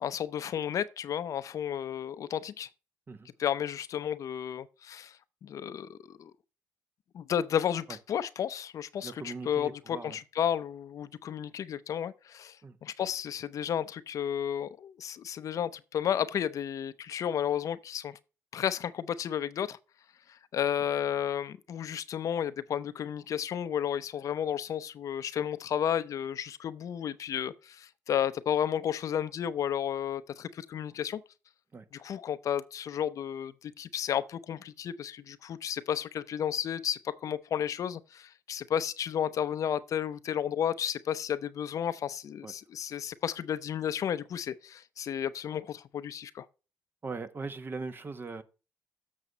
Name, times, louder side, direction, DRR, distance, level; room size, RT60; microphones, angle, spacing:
voice 1, 0.0-2.7 3.4-5.2 5.4-6.3 7.1-12.6 12.8-18.2 18.5-19.8 20.3-31.2 31.9-46.5, left 9 dB, 60° left, 0.6 m, -32 dB
voice 2, 9.0-10.2 12.6-12.8 31.7-31.9 42.4-42.5 47.0-48.4, right 4 dB, 35° right, 1.1 m, -40 dB
7.5 x 6.5 x 4.0 m
supercardioid pair, 65°, 6 cm